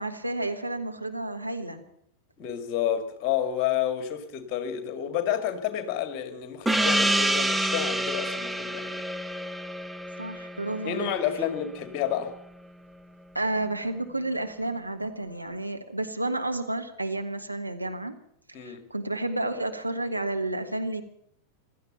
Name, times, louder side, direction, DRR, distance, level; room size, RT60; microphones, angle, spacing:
voice 1, 0.0-1.8 10.2-11.1 13.3-18.2 18.6-21.0, right 2 dB, 85° right, 1.4 m, -31 dB
voice 2, 2.4-9.0 10.8-12.3 18.5-18.8, left 10 dB, 40° left, 2.2 m, -30 dB
Gong, 6.7-11.7, right 1 dB, 5° right, 0.5 m, -28 dB
16.0 x 13.0 x 7.0 m
figure-of-eight pair, 90°, 0 cm